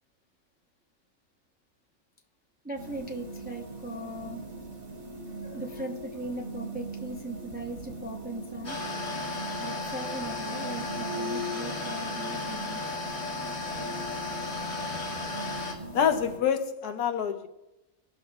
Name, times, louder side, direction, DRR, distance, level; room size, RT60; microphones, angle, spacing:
voice 1, 2.6-4.4 5.5-8.8 9.6-12.8, right 2 dB, 10° right, 0.6 m, -38 dB
sound 1, 2.7-16.4, right 1 dB, 65° right, 2.4 m, -40 dB
sound 2, 8.6-15.7, left 3 dB, 55° left, 2.2 m, -35 dB
voice 2, 15.9-17.5, left 8 dB, 80° left, 1.2 m, -26 dB
19.0 x 6.5 x 2.4 m
omnidirectional pair, 1.6 m